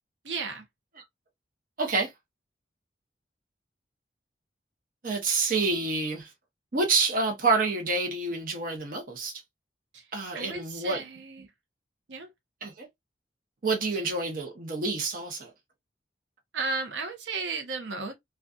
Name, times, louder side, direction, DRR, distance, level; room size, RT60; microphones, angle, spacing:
voice 1, 0.2-0.6 9.9-10.1 10.3-11.5 12.1-12.3 16.5-18.1, right 4 dB, 85° right, 0.7 m, -34 dB
voice 2, 1.8-2.1 5.0-6.3 6.7-9.4 10.1-11.0 12.6-12.9 13.6-15.5, right 3 dB, 50° right, 0.7 m, -28 dB
2.5 x 2.3 x 2.2 m
head